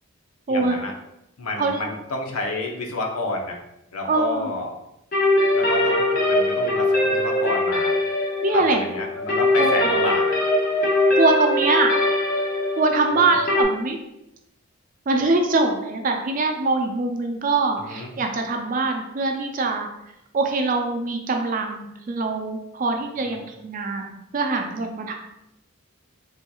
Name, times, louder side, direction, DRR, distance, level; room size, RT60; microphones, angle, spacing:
voice 1, 0.5-0.9 1.4-3.6 3.9-4.8 5.5-8.0 8.5-10.4 17.8-18.2 23.3-23.4, left 2 dB, 80° left, 1 dB, 0.6 m, -30 dB
voice 2, 1.6-1.9 4.0-4.5 8.4-8.8 9.6-9.9 11.2-11.9 12.8-14.0 15.1-19.9 20.3-24.1 24.3-25.1, right 3 dB, 40° right, 3 dB, 0.3 m, -23 dB
sound 1, 5.1-13.6, left 1 dB, 40° left, 0.6 m, -21 dB
3.4 x 2.9 x 2.3 m, 0.87 s
head